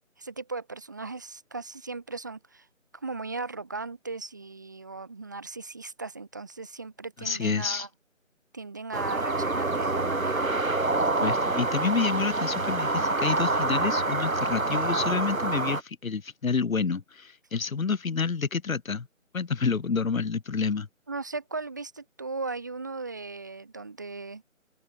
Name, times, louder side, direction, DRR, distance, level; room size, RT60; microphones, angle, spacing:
voice 1, 0.2-2.7 2.9-7.9 8.5-10.5 21.1-24.4, right 3 dB, 15° right, 1.8 m, -37 dB
voice 2, 7.2-7.9 10.9-19.1 19.3-20.9, left 5 dB, 80° left, 1.0 m, -29 dB
sound 1, 8.9-15.8, right 2 dB, 85° right, 2.8 m, -27 dB
open air
figure-of-eight pair, 170°, 40 cm